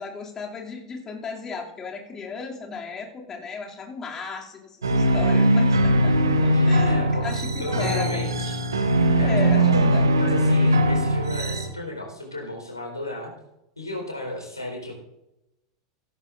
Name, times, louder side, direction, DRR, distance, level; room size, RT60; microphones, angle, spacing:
voice 1, 0.0-6.1 6.4-8.3 9.2-10.1, left 5 dB, 25° left, 0 dB, 2.5 m, -35 dB
sound 1, 4.8-11.7, right 1 dB, 75° right, 1.3 m, -20 dB
voice 2, 6.5-7.3 7.6-8.6 9.2-9.7 10.2-13.3 13.8-14.9, left 1 dB, 85° left, 1 dB, 4.2 m, -34 dB
16.0 x 14.5 x 2.6 m, 0.88 s
figure-of-eight pair, 85°, 2 cm